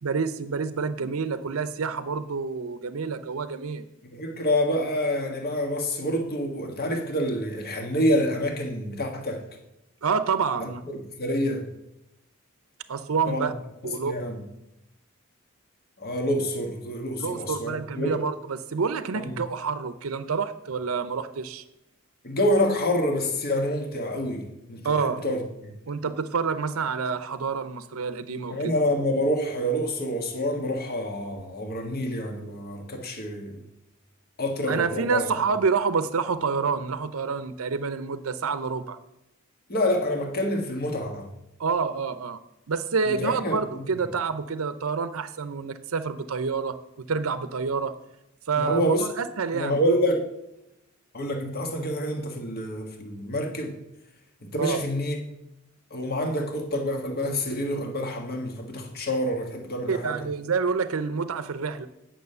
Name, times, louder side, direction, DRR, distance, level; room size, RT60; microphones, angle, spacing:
voice 1, 0.0-3.9 10.0-10.8 12.9-13.5 13.8-14.1 17.2-21.6 24.8-25.2 25.9-28.7 34.7-39.0 41.6-42.4 42.7-47.9 48.5-49.8 54.6-54.8 59.9-61.9, right 5 dB, 75° right, 12 dB, 0.6 m, -28 dB
voice 2, 4.1-9.4 10.6-11.6 13.3-13.5 13.8-14.4 16.0-18.2 19.1-19.4 22.2-25.7 28.5-33.6 34.4-35.3 39.7-41.3 43.1-43.6 48.6-49.0 49.5-50.2 51.1-53.8 54.4-55.2 55.9-60.2, equal, 50° left, 3 dB, 1.6 m, -27 dB
9.4 x 6.1 x 6.7 m, 0.88 s
head